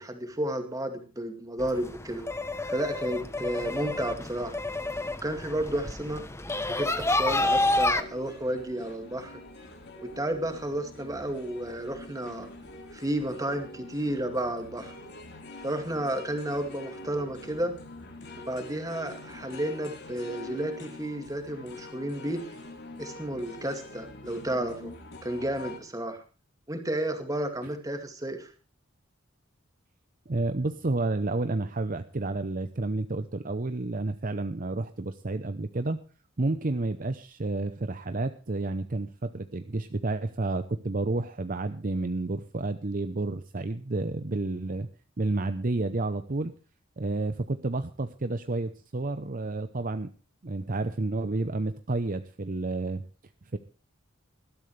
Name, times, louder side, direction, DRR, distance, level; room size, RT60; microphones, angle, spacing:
voice 1, 0.0-2.2 2.7-4.6 5.2-6.3 6.7-9.4 10.0-12.5 12.9-14.9 15.6-17.8 18.5-22.4 23.0-24.9 25.2-26.2 26.7-28.5, right 1 dB, 15° right, 6 dB, 2.3 m, -32 dB
sound 1, 1.6-8.0, left 2 dB, 15° left, 0.8 m, -29 dB
sound 2, 7.6-25.8, left 2 dB, 55° left, 3.2 m, -45 dB
voice 2, 30.3-36.0 36.4-44.9 45.2-46.5 47.0-50.1 50.4-53.0 53.5-53.6, right 2 dB, 40° right, 10 dB, 0.7 m, -30 dB
20.0 x 12.5 x 3.3 m, 0.35 s
head